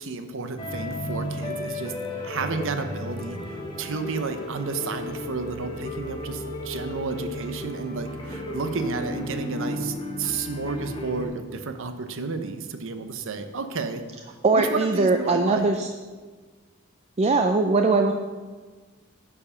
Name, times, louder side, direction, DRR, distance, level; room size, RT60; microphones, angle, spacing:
voice 1, 0.0-1.9 2.2-14.0 14.3-15.7, right 4 dB, 65° right, 8 dB, 0.7 m, -32 dB
sound 1, 0.6-11.3, left 1 dB, 20° left, 1.2 m, -34 dB
voice 2, 14.4-15.9 17.2-18.1, right 3 dB, 30° right, 5 dB, 0.4 m, -21 dB
10.0 x 4.9 x 5.6 m, 1.4 s
head